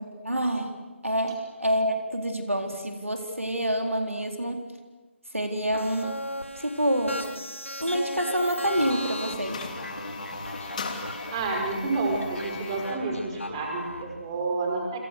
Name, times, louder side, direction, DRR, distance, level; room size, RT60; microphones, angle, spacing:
voice 1, 0.2-0.7 1.0-4.7 5.3-6.2 6.6-7.2 7.8-9.6, equal, 85° right, 4 dB, 4.1 m, -27 dB
sound 1, 5.7-14.0, left 1 dB, 85° left, 5.0 m, -37 dB
sound 2, 8.6-13.0, left 4 dB, 35° left, 3.1 m, -39 dB
voice 2, 11.3-15.0, right 3 dB, 25° right, 1 dB, 5.5 m, -29 dB
29.5 x 27.5 x 6.5 m, 1.3 s
figure-of-eight pair, 155°, 7 cm